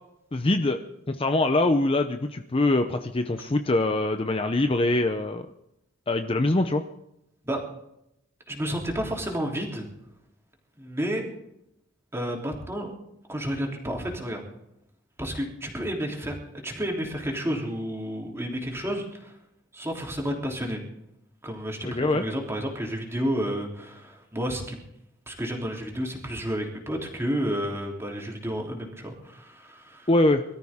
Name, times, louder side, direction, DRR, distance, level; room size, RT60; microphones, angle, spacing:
voice 1, 0.3-0.8 1.1-5.5 6.1-6.8 21.8-22.2 30.1-30.4, left 2 dB, 30° left, 7 dB, 0.7 m, -23 dB
voice 2, 8.5-9.9 10.8-11.3 12.1-12.9 13.3-14.4 15.2-16.3 16.6-19.3 19.7-20.8 21.4-24.8 25.3-30.1, equal, 15° right, 0 dB, 3.4 m, -31 dB
23.0 x 13.5 x 3.7 m, 0.81 s
head